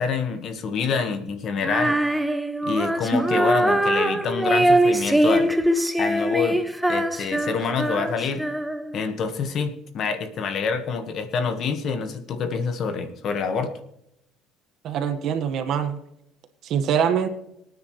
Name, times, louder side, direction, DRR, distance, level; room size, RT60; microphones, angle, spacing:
voice 1, 0.0-2.0 2.6-5.6 6.0-6.6 6.9-8.4 8.9-13.7, left 5 dB, 45° left, 8 dB, 1.5 m, -26 dB
Female singing, 1.6-9.0, right 1 dB, 5° right, 0.7 m, -22 dB
voice 2, 14.8-16.0 16.6-17.3, right 8 dB, 50° right, 8 dB, 1.5 m, -24 dB
23.5 x 9.5 x 3.2 m, 0.80 s
cardioid pair, 145°, 0 cm